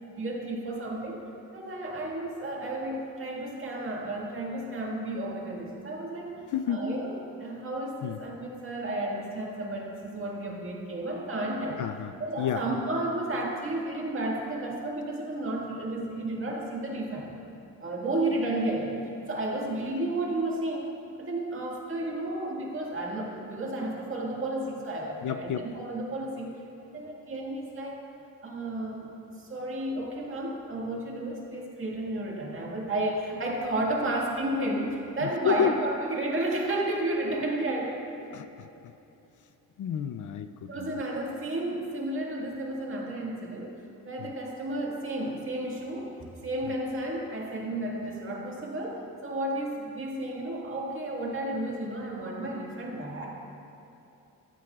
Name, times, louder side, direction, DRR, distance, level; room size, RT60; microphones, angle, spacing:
voice 1, 0.2-1.2 1.5-6.4 6.7-11.8 12.2-17.3 17.8-19.0 19.3-20.9 21.2-26.5 26.8-28.0 28.4-29.1 29.4-38.1 40.7-43.7 44.0-53.3, right 1 dB, 35° right, -2 dB, 1.8 m, -32 dB
voice 2, 6.5-6.8 8.0-8.2 11.8-12.6 25.2-25.7 35.2-35.7 38.3-38.9 39.8-41.0 44.2-44.3, left 9 dB, 60° left, 10 dB, 0.5 m, -31 dB
16.5 x 13.0 x 2.4 m, 2.9 s
wide cardioid pair, 155°, 35 cm